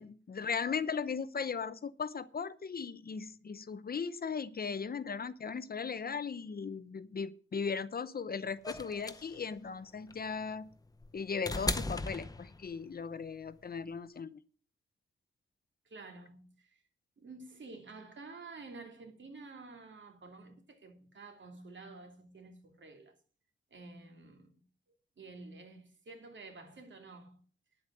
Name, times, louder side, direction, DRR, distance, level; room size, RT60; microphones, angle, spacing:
voice 1, 0.0-10.7 11.1-14.4, left 5 dB, 45° left, 0.7 m, -37 dB
sound 1, 8.6-12.9 14.2-14.3, left 2 dB, 15° left, 0.8 m, -38 dB
voice 2, 15.8-16.8 17.2-23.1 23.7-24.6 25.2-27.4, right 3 dB, 65° right, 2.6 m, -50 dB
10.0 x 8.0 x 7.4 m
wide cardioid pair, 125°, 21 cm